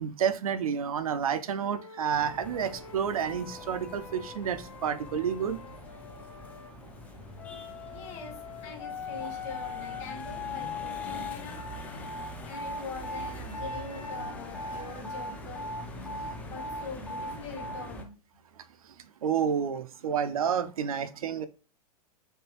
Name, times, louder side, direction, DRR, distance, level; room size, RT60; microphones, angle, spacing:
voice 1, 0.0-5.6 19.2-21.5, right 7 dB, 65° right, 0.4 m, -30 dB
Wind instrument woodwind instrument, 1.6-6.7 7.4-12.0 12.8-15.0, left 8 dB, 50° left, 0.7 m, -43 dB
sound 1, 2.1-18.0, equal, 5° left, 0.4 m, -41 dB
voice 2, 7.9-11.6 12.4-15.7 16.4-18.1, left 4 dB, 35° left, 1.4 m, -43 dB
3.2 x 2.3 x 3.0 m
figure-of-eight pair, 100°, 20 cm